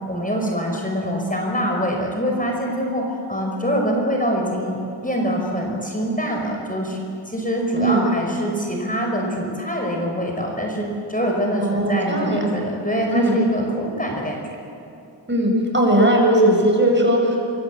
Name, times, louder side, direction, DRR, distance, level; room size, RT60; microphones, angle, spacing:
voice 1, 0.1-7.0 7.3-14.4, equal, 20° left, 0 dB, 5.5 m, -24 dB
voice 2, 7.8-8.1 11.6-12.5 13.1-13.4 15.3-17.4, right 1 dB, 25° right, 0 dB, 7.9 m, -18 dB
25.5 x 25.0 x 8.4 m, 2.7 s
wide cardioid pair, 65°, 45 cm